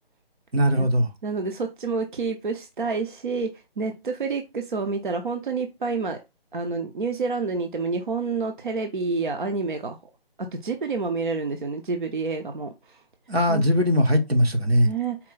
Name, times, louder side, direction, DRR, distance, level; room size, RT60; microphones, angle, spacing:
voice 1, 0.5-1.1 13.3-14.9, equal, 80° right, 1.2 m, -20 dB
voice 2, 1.2-6.2 6.5-10.0 10.4-12.7 13.5-13.6 14.8-15.2, right 4 dB, 55° right, 0.6 m, -28 dB
4.4 x 2.2 x 3.9 m
figure-of-eight pair, 150°, 30 cm